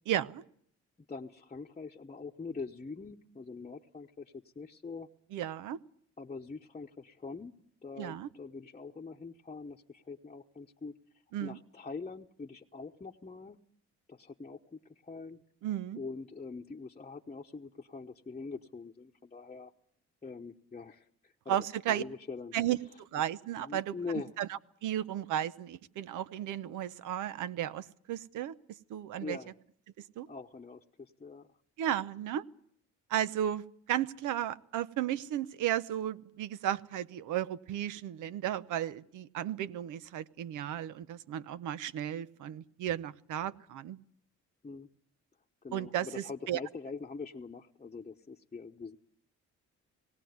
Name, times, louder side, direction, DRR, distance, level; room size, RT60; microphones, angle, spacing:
voice 1, 0.1-0.4 5.3-5.8 8.0-8.3 11.3-11.6 15.6-16.0 21.5-22.0 22.5-24.0 24.4-29.4 30.0-30.3 31.8-32.4 33.1-44.0 45.7-46.6, right 11 dB, 85° right, 16 dB, 0.8 m, -34 dB
voice 2, 1.1-5.1 6.2-7.5 7.8-10.9 11.4-13.6 14.1-15.4 16.0-19.7 20.2-22.5 23.6-24.3 29.2-29.5 30.3-31.5 44.6-44.9 45.6-49.0, left 4 dB, 20° left, 0 dB, 1.0 m, -43 dB
19.0 x 17.5 x 9.4 m, 0.65 s
cardioid pair, 90°, 30 cm